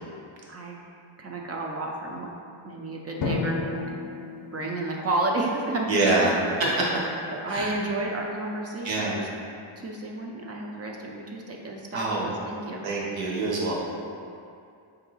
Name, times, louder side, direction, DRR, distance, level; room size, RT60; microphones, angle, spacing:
voice 1, 1.2-2.3 2.6-4.1 4.5-6.3 6.6-6.9 7.3-9.3 9.8-12.8, right 2 dB, 35° right, -1 dB, 0.4 m, -31 dB
Drum, 3.2-5.7, left 3 dB, 45° left, 0.6 m, -32 dB
voice 2, 5.9-6.3 6.8-6.9 7.5-7.7 8.8-9.2 11.9-12.3 12.8-13.7, right 3 dB, 60° right, -3 dB, 1.1 m, -25 dB
4.6 x 2.7 x 3.9 m, 2.4 s
cardioid pair, 125°, 50 cm